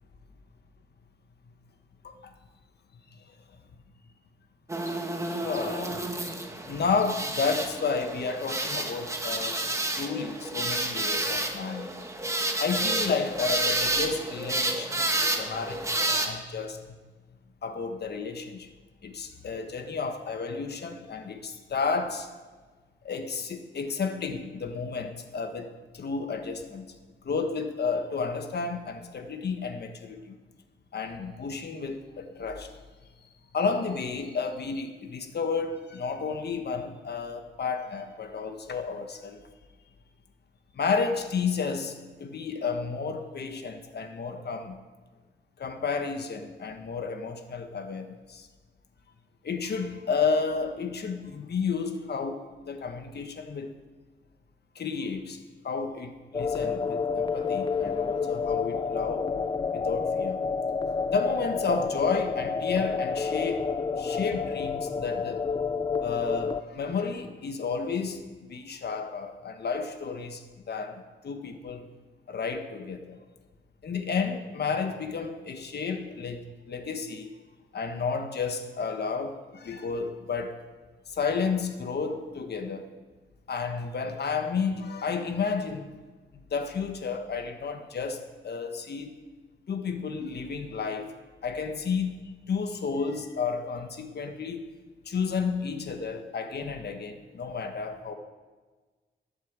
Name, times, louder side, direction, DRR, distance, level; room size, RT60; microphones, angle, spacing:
sound 1, 4.7-16.3, right 1 dB, 15° right, 1.5 m, -30 dB
voice 1, 5.3-6.0 6.7-12.0 12.6-17.0 17.6-18.7 19.0-22.3 23.0-26.8 27.2-30.3 30.9-32.7 33.5-39.4 40.7-44.8 45.6-48.5 49.4-53.7 54.7-55.4 55.6-59.3 59.7-60.4 61.1-65.4 66.0-70.4 70.7-71.9 72.3-73.2 73.8-77.3 77.7-80.6 81.1-82.9 83.5-85.9 86.5-89.2 89.7-91.1 91.4-92.2 92.5-94.7 95.0-98.1, left 5 dB, 60° left, 6 dB, 1.3 m, -32 dB
sound 2, 56.3-66.6, left 5 dB, 25° left, 0.4 m, -29 dB
11.0 x 8.9 x 7.5 m, 1.4 s
wide cardioid pair, 110°, 19 cm